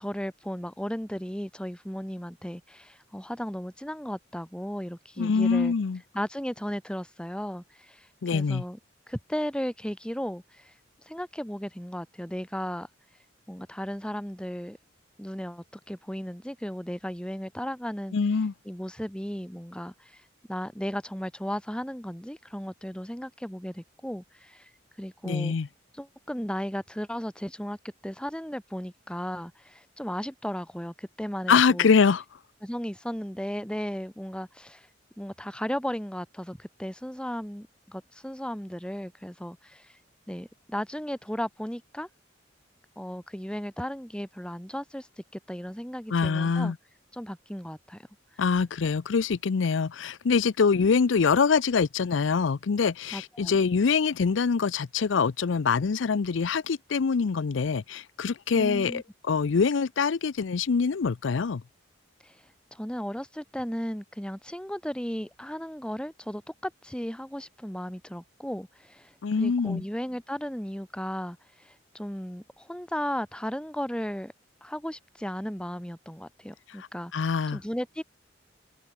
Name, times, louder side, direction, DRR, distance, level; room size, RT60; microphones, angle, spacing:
voice 1, 0.0-5.7 6.1-8.8 9.1-10.7 11.1-12.9 13.5-14.8 15.2-18.2 18.7-20.2 20.5-24.7 25.0-25.6 25.9-27.8 28.0-31.9 32.6-34.9 35.2-39.9 40.3-42.1 43.0-45.1 45.3-46.7 47.1-48.0 53.1-53.7 58.5-59.0 62.2-62.4 62.7-74.3 74.6-77.1 77.5-78.0, equal, 5° left, 2.3 m, -35 dB
voice 2, 5.2-6.0 8.2-8.6 18.1-18.5 25.2-25.7 31.5-32.2 46.1-46.8 48.4-61.6 69.2-69.8 76.8-76.9 77.1-77.6, left 5 dB, 75° left, 0.5 m, -24 dB
head